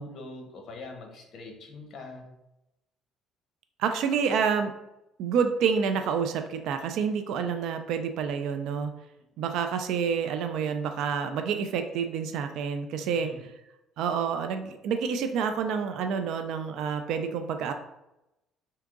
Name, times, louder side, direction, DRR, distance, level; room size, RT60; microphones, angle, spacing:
voice 1, 0.0-2.3 13.0-13.4, left 2 dB, 50° left, 2 dB, 0.9 m, -43 dB
voice 2, 3.8-4.7 5.2-8.9 9.4-13.3 14.0-17.7, right 6 dB, 70° right, 7 dB, 0.3 m, -28 dB
3.5 x 2.8 x 3.6 m, 0.90 s
cardioid pair, 130°, 0 cm